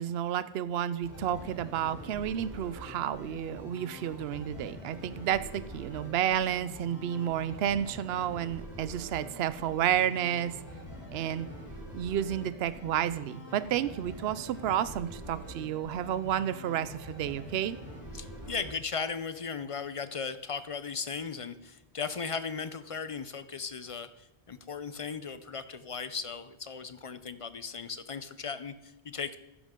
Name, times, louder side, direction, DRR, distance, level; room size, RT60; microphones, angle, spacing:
voice 1, 0.0-10.6 11.1-11.5 11.9-17.8, right 10 dB, 70° right, 14 dB, 0.8 m, -31 dB
sound 1, 1.0-18.7, equal, 15° left, 4.6 m, -45 dB
voice 2, 18.1-29.4, left 5 dB, 40° left, 12 dB, 0.5 m, -37 dB
15.0 x 10.5 x 3.7 m, 0.98 s
omnidirectional pair, 1.1 m